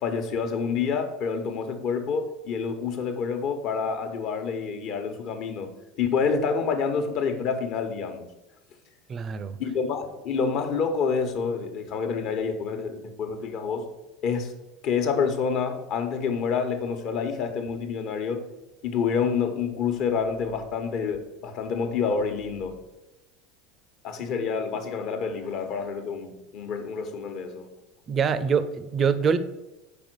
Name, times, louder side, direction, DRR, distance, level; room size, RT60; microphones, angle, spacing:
voice 1, 0.0-5.7 6.0-8.3 9.6-13.9 14.2-14.5 14.8-18.5 18.8-22.8 24.0-27.7, left 5 dB, 55° left, 1.1 m, -28 dB
voice 2, 9.1-9.6 28.1-29.4, right 6 dB, 35° right, 0.6 m, -24 dB
5.5 x 4.5 x 6.3 m
hypercardioid pair, 85°, 0 cm